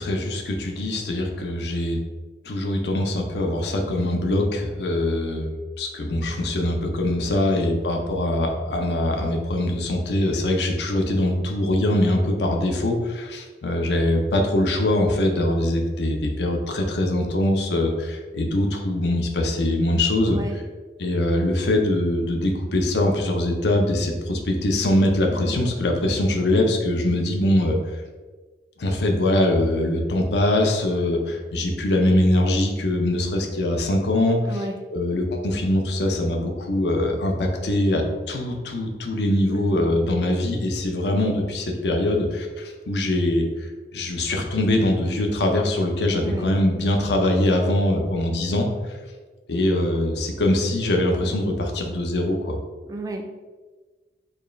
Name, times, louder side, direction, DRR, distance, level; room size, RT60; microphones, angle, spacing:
voice 1, 0.0-2.0 2.4-5.5 5.8-20.6 21.0-28.0 28.8-34.6 34.9-48.7 49.5-52.6, left 1 dB, 75° left, 2 dB, 0.5 m, -23 dB
voice 2, 7.3-7.7 20.3-20.6 25.3-25.6 34.5-34.8 39.5-39.9 46.2-46.5 52.8-53.3, right 2 dB, 20° right, 3 dB, 0.3 m, -33 dB
4.5 x 2.3 x 3.1 m, 1.3 s
head